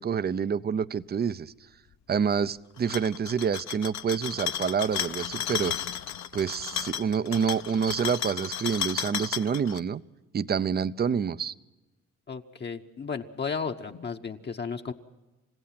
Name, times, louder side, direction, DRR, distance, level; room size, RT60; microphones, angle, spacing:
voice 1, 0.0-1.5 2.1-5.7 6.3-10.0 10.3-11.5, right 7 dB, 30° right, 16 dB, 0.6 m, -27 dB
sound 1, 2.8-9.8, left 9 dB, 65° left, 1.0 m, -33 dB
voice 2, 12.3-14.9, left 5 dB, 35° left, 4 dB, 1.0 m, -34 dB
29.5 x 15.5 x 5.9 m, 1.1 s
cardioid pair, 90°, 30 cm